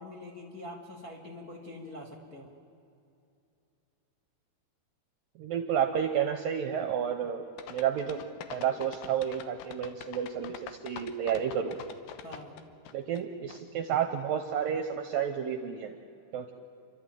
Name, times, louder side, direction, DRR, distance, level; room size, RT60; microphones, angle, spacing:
voice 1, 0.0-2.5 12.2-12.5, left 1 dB, 30° left, 0 dB, 1.7 m, -44 dB
voice 2, 5.4-8.2 8.5-11.8 12.9-15.9 16.3-16.5, right 8 dB, 70° right, 6 dB, 2.2 m, -31 dB
sound 1, 7.6-13.2 13.5-13.6, left 9 dB, 70° left, 2.5 m, -44 dB
30.0 x 12.5 x 9.1 m, 2.6 s
omnidirectional pair, 5.1 m